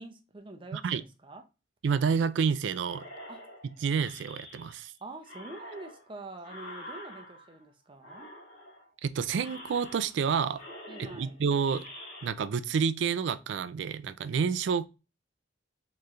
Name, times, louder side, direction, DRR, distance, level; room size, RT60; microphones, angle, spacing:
voice 1, 0.0-1.4 3.3-3.4 5.0-8.3 10.9-11.4, right 2 dB, 30° right, 0.6 m, -46 dB
voice 2, 1.8-3.1 3.8-4.9 9.0-10.6 11.0-11.8 12.2-14.9, right 6 dB, 75° right, 0.3 m, -29 dB
sound 1, 2.8-4.9 5.2-7.6 8.0-8.9 9.3-10.3 10.5-12.3, left 1 dB, 50° left, 1.6 m, -47 dB
4.4 x 3.1 x 2.5 m
head